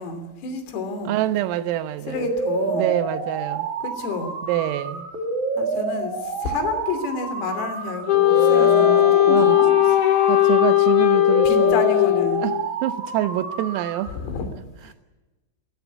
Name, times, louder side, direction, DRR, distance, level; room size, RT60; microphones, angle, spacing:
voice 1, 0.0-1.2 2.1-2.9 3.8-4.3 5.6-9.7 11.5-12.4 14.2-14.5 14.8-14.9, left 5 dB, 85° left, 5.8 m, -29 dB
voice 2, 1.1-2.3 2.7-3.7 4.4-5.1 8.4-9.6 10.3-11.9 12.4-12.5 12.8-14.1, right 13 dB, 85° right, 3.7 m, -26 dB
sound 1, 2.1-14.1, right 4 dB, 45° right, 3.3 m, -28 dB
Wind instrument woodwind instrument, 8.1-12.7, left 14 dB, 60° left, 2.7 m, -17 dB
29.5 x 14.0 x 8.3 m
omnidirectional pair, 6.0 m